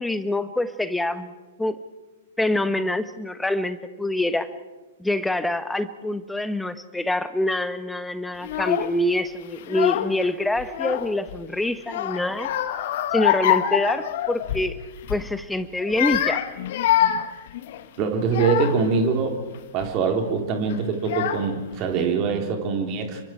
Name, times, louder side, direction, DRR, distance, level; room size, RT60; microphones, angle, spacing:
voice 1, 0.0-1.3 1.6-1.8 2.4-4.5 5.0-12.5 13.1-14.8 15.1-16.4, left 1 dB, 5° left, 12 dB, 1.2 m, -25 dB
Child speech kid speaking / Crying sobbing, 8.4-9.0 9.6-10.3 10.6-11.4 11.9-14.7 15.0-15.3 15.8-18.9 19.5-19.9 20.7-20.8 21.0-21.8, left 11 dB, 50° left, 1.5 m, -25 dB
voice 2, 18.0-19.4 19.7-23.2, right 5 dB, 35° right, 3 dB, 3.7 m, -23 dB
29.0 x 24.0 x 4.6 m, 1.2 s
figure-of-eight pair, 105°, 0 cm